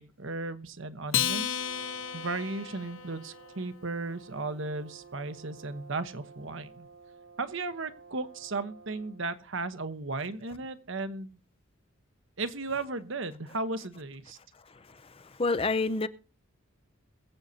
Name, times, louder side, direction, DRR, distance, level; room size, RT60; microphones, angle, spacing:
voice 1, 0.0-1.6 2.1-6.9 7.4-11.4 12.4-14.4, right 3 dB, 55° right, 1.0 m, -35 dB
Acoustic guitar, 1.1-3.8, left 9 dB, 65° left, 1.0 m, -33 dB
Brass instrument, 1.5-9.3, right 5 dB, 80° right, 3.7 m, -53 dB
voice 2, 14.5-16.1, left 3 dB, 25° left, 0.5 m, -30 dB
22.0 x 8.0 x 2.8 m
head